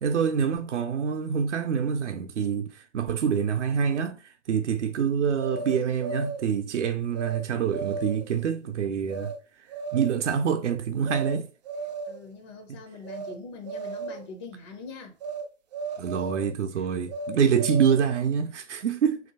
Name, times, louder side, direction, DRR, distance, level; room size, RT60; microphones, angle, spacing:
voice 1, 0.0-9.3 9.9-11.5 12.7-12.8 16.0-19.2, right 7 dB, 70° right, 0.7 m, -26 dB
sound 1, 5.4-6.5 7.2-7.4 7.7-8.3 9.1-9.4 9.7-10.3 11.0-11.4 11.7-12.3 13.0-13.4 13.7-14.3 15.2-15.5 15.7-16.5 17.1-18.1, right 4 dB, 35° right, 0.4 m, -35 dB
voice 2, 12.1-15.2, left 4 dB, 25° left, 0.4 m, -42 dB
3.2 x 2.7 x 4.0 m
hypercardioid pair, 135°, 37 cm